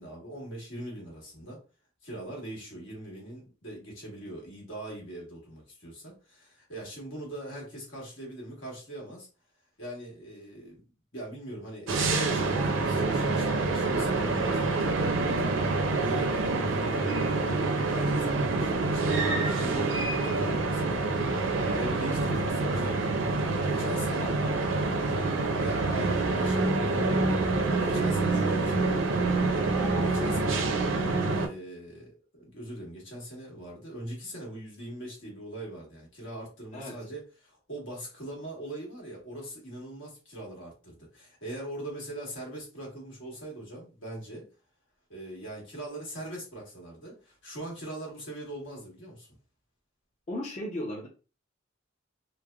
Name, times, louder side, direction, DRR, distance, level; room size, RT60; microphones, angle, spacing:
voice 1, 0.0-1.6 2.0-9.3 9.8-10.8 11.1-15.6 15.9-21.1 21.6-24.4 25.1-25.3 25.6-29.3 30.0-30.7 31.3-44.4 45.1-49.3, right 1 dB, 75° left, -3 dB, 1.3 m, -41 dB
sound 1, 11.9-31.5, right 3 dB, 90° right, 0.5 m, -27 dB
voice 2, 24.2-24.9 25.2-25.4 36.7-36.9 50.3-51.1, left 1 dB, 35° left, -2 dB, 0.5 m, -37 dB
3.2 x 2.0 x 2.3 m, 0.34 s
head